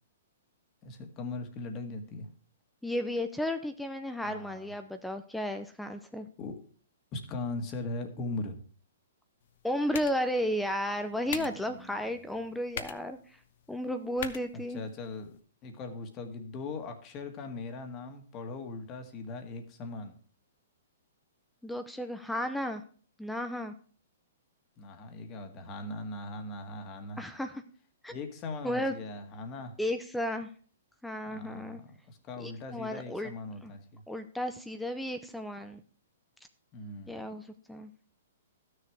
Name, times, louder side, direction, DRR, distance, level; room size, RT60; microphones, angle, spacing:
voice 1, 0.8-2.3 4.2-4.7 6.4-6.5 7.1-8.6 11.3-12.1 14.7-15.3 15.6-20.1 24.8-27.2 28.1-29.8 31.3-34.0 36.7-37.3, left 3 dB, 30° left, 6 dB, 1.7 m, -40 dB
voice 2, 2.8-6.3 9.6-13.4 13.7-14.8 21.6-22.8 23.2-23.7 27.2-27.6 28.0-28.1 28.6-28.9 29.8-30.5 31.0-31.8 32.4-33.3 33.6-33.7 34.1-35.8 37.1-37.9, equal, 5° left, 8 dB, 0.6 m, -33 dB
sound 1, 9.4-15.4, left 8 dB, 60° left, 0.9 m, -45 dB
12.0 x 6.7 x 4.7 m, 0.42 s
hypercardioid pair, 130°, 0 cm